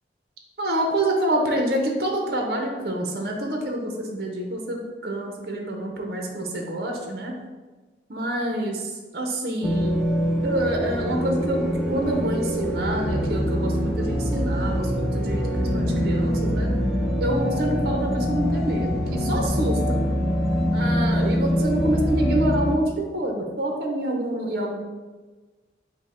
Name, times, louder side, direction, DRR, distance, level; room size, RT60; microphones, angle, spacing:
voice 1, 0.6-7.3 8.1-10.0 10.4-11.6 11.9-16.7 17.2-20.0 20.7-24.8, right 1 dB, 55° right, 1 dB, 0.6 m, -27 dB
sound 1, 9.6-22.7, equal, ahead, 0.4 m, -24 dB
5.2 x 2.1 x 4.2 m, 1.3 s
head